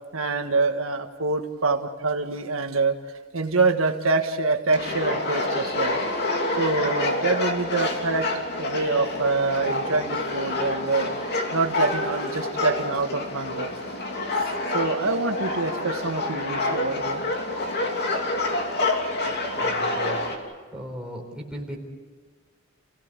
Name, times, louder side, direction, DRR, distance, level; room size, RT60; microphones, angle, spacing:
voice 1, 0.1-2.9 3.3-5.9 6.6-8.3 8.6-11.1 11.5-13.7 14.4-17.2, right 3 dB, 90° right, 5 dB, 1.6 m, -25 dB
sound 1, 4.7-20.4, left 2 dB, 55° left, 3.0 m, -27 dB
voice 2, 19.3-20.2 20.7-21.8, equal, 5° right, -1 dB, 4.0 m, -37 dB
28.5 x 17.0 x 8.4 m, 1.5 s
head